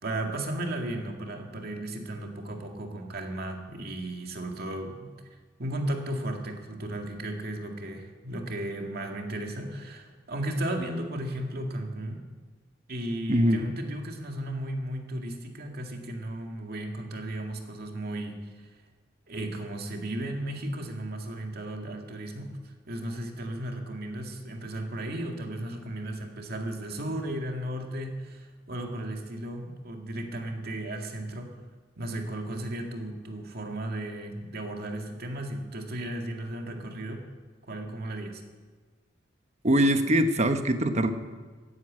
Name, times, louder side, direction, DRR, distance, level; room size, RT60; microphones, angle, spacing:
voice 1, 0.0-5.1 5.6-12.3 12.9-18.5 19.3-22.6 22.9-31.5 32.0-37.3 37.7-38.4, right 1 dB, 55° right, 3 dB, 2.1 m, -35 dB
voice 2, 13.3-13.6 39.6-41.1, right 1 dB, 40° right, 8 dB, 1.1 m, -22 dB
14.5 x 9.4 x 8.8 m, 1.4 s
head